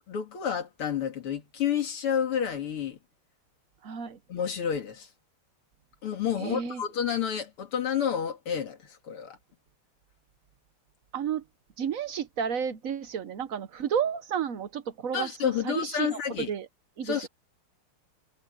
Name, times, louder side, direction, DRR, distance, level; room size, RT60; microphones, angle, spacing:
voice 1, 0.1-3.0 4.3-5.1 6.0-9.4 15.1-16.5 17.0-17.3, left 8 dB, 80° left, 3.0 m, -30 dB
voice 2, 3.8-4.2 6.4-6.8 11.1-11.4 11.8-16.2 16.5-16.7 17.0-17.3, right 8 dB, 60° right, 0.9 m, -31 dB
omnidirectional pair, 2.4 m